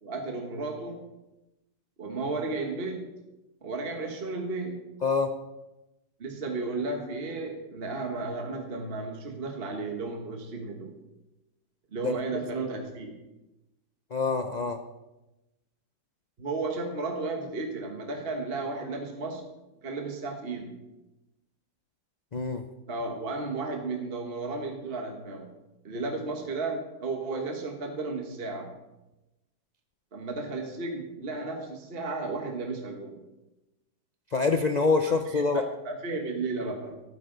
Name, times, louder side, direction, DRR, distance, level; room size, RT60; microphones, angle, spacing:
voice 1, 0.0-1.0 2.0-3.1 3.6-4.8 6.2-11.0 11.9-13.2 16.4-19.5 19.8-20.8 22.9-25.5 25.8-28.8 30.1-33.2 35.3-37.0, right 3 dB, 35° right, 2 dB, 1.4 m, -34 dB
voice 2, 14.1-14.8 22.3-22.6 34.3-35.6, left 4 dB, 80° left, 6 dB, 0.3 m, -25 dB
13.5 x 12.5 x 3.9 m, 0.99 s
omnidirectional pair, 1.8 m